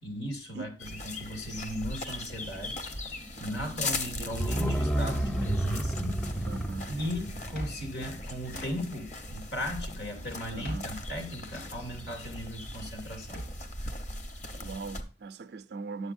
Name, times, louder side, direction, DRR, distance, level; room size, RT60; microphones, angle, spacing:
voice 1, 0.0-0.7 1.0-2.8 3.4-6.2 6.9-13.4, equal, 70° left, 2.5 m, -37 dB
sound 1, 0.8-15.0, left 2 dB, 40° left, 0.9 m, -39 dB
voice 2, 3.5-4.8 6.5-7.0 10.5-10.9 14.6-16.1, right 4 dB, 65° right, 0.4 m, -41 dB
sound 2, 4.3-9.0 9.3-9.4, right 1 dB, 5° left, 0.4 m, -32 dB
Drawer open or close, 6.1-9.3 9.5-13.8, right 1 dB, 55° left, 3.3 m, -45 dB
9.6 x 7.6 x 2.5 m
head